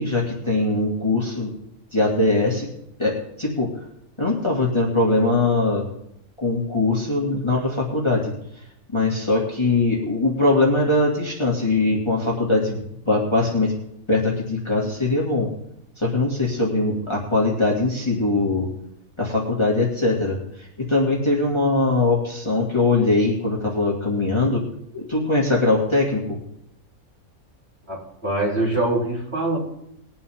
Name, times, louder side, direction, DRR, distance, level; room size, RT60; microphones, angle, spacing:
voice 1, 0.0-1.5 1.9-2.7 3.0-3.7 4.2-5.8 6.4-8.3 8.9-13.7 14.1-15.5 16.0-18.7 19.2-24.6 24.9-26.4, left 2 dB, 20° left, -3 dB, 2.3 m, -21 dB
voice 2, 27.9-29.6, right 2 dB, 45° right, -5 dB, 5.0 m, -24 dB
21.0 x 8.6 x 3.7 m, 0.77 s
omnidirectional pair, 1.5 m